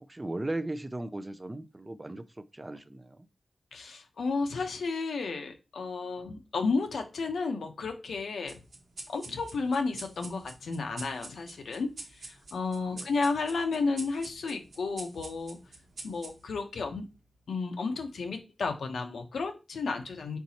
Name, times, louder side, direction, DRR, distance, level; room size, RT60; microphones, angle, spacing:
voice 1, 0.0-3.3 12.9-13.1, right 2 dB, 20° right, 0.4 m, -37 dB
voice 2, 3.7-8.6 9.1-11.9 12.2-15.6 16.0-17.0 17.5-20.4, left 4 dB, 90° left, 0.8 m, -32 dB
sound 1, 8.5-17.4, right 2 dB, 60° right, 1.0 m, -47 dB
4.5 x 4.0 x 2.8 m
wide cardioid pair, 115°, 0 cm